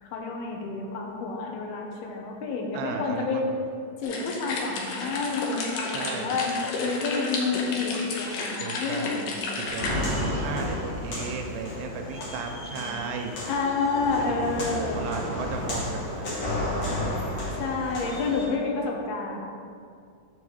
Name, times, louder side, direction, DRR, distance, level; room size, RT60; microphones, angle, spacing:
voice 1, 0.0-3.5 4.0-6.5 6.8-9.6 13.5-15.0 17.5-19.4, left 4 dB, 85° left, 0 dB, 3.0 m, -29 dB
voice 2, 2.7-3.4 5.9-6.2 8.6-9.3 9.6-13.4 14.2-17.5, right 5 dB, 80° right, 4 dB, 2.3 m, -36 dB
sound 1, 4.0-9.9, left 3 dB, 70° left, 2.3 m, -32 dB
Walk footsteps, 9.7-18.4, left 1 dB, 50° left, 2.5 m, -32 dB
6.2 x 5.3 x 6.3 m, 2.3 s
omnidirectional pair, 4.3 m